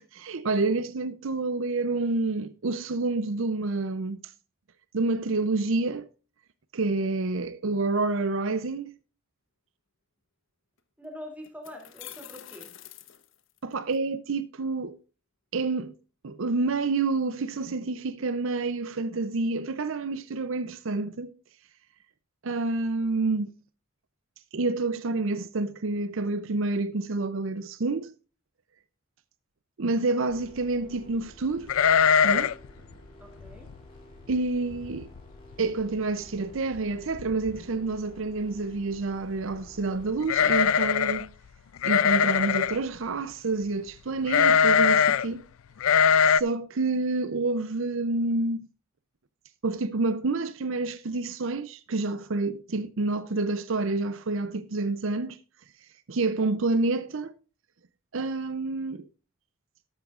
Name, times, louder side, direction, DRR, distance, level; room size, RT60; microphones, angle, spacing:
voice 1, 0.0-4.2 4.9-6.1 6.7-9.0 13.6-15.0 15.5-15.9 16.2-21.3 22.4-23.5 24.5-28.1 29.8-31.7 32.2-32.5 34.3-35.1 35.6-41.3 41.8-45.4 46.3-48.7 49.6-55.4 56.1-57.3 58.1-59.1, right 3 dB, 65° right, 0.6 m, -28 dB
sound 1, 10.8-10.9 11.4-14.0, left 12 dB, 60° left, 1.0 m, -46 dB
voice 2, 11.0-12.7 33.2-33.7, left 1 dB, 5° right, 2.8 m, -44 dB
sound 2, 30.3-40.6, left 1 dB, 25° left, 4.1 m, -51 dB
sound 3, 31.7-32.7 32.9-33.0 33.5-33.8 34.3-34.4 34.7-35.2 35.5-35.6 36.7-36.8 37.1-37.6 40.2-41.2 41.8-42.8 44.3-45.2 45.8-46.4, left 7 dB, 75° left, 0.4 m, -21 dB
13.5 x 11.5 x 2.4 m
head